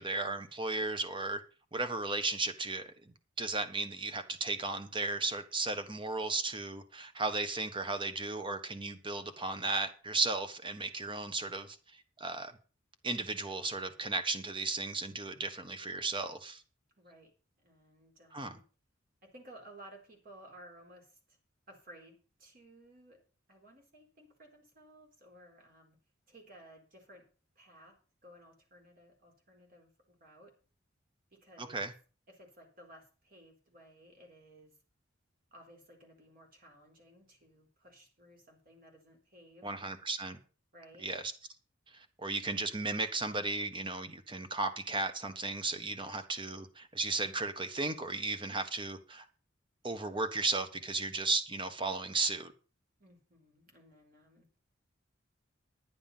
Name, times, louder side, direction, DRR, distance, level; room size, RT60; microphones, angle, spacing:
voice 1, 0.0-1.4 1.7-11.8 12.2-12.5 13.0-16.6 18.3-18.6 31.6-31.9 39.6-40.4 41.0-41.2 41.9-49.2 49.8-52.5, right 3 dB, 25° right, 9 dB, 1.3 m, -35 dB
voice 2, 17.0-17.3 17.6-18.6 19.2-21.4 21.7-23.2 23.5-26.0 26.3-27.3 27.6-28.0 28.2-30.5 31.3-31.8 32.3-34.8 35.5-39.7 40.7-41.1 53.0-54.5, right 1 dB, 50° right, 2 dB, 4.2 m, -57 dB
10.5 x 9.7 x 5.6 m, 0.36 s
head